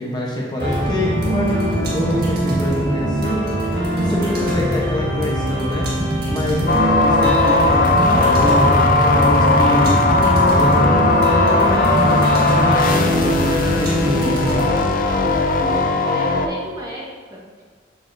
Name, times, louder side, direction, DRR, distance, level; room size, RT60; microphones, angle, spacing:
voice 1, 0.0-5.9 6.3-10.0 10.5-14.7, equal, 25° left, -3 dB, 0.8 m, -25 dB
sound 1, 0.6-15.9, right 1 dB, 55° right, 1.7 m, -21 dB
sound 2, 6.7-16.5, left 3 dB, 45° left, 0.5 m, -18 dB
voice 2, 15.6-17.0 17.3-17.6, equal, 20° right, -4 dB, 1.3 m, -34 dB
7.5 x 7.1 x 2.6 m, 1.5 s
head